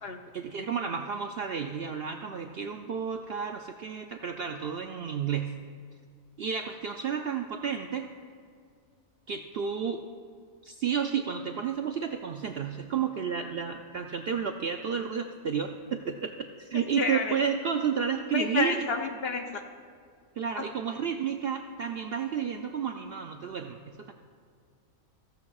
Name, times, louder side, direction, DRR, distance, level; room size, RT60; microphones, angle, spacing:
voice 1, 0.3-5.5 6.4-8.1 9.3-10.0 10.6-16.3 16.6-18.9 20.4-24.1, right 7 dB, 65° right, 5 dB, 0.6 m, -31 dB
voice 2, 17.0-17.4 18.3-19.6, left 4 dB, 55° left, 5 dB, 0.7 m, -30 dB
15.0 x 14.5 x 2.4 m, 2.1 s
omnidirectional pair, 1.5 m